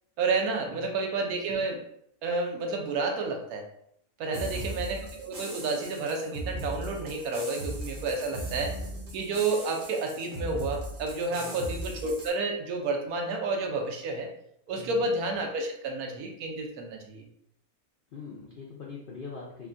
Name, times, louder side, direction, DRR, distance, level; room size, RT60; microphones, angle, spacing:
voice 1, 0.2-1.8 2.2-3.6 4.2-8.7 9.1-14.3 14.7-17.2, right 3 dB, 80° right, 2 dB, 1.1 m, -30 dB
voice 2, 4.3-4.7 11.4-11.6 14.8-15.0 18.1-19.7, left 4 dB, 90° left, -2 dB, 0.4 m, -43 dB
sound 1, 4.3-12.3, right 1 dB, 50° right, 0.7 m, -38 dB
3.3 x 2.2 x 2.5 m, 0.70 s
omnidirectional pair, 1.5 m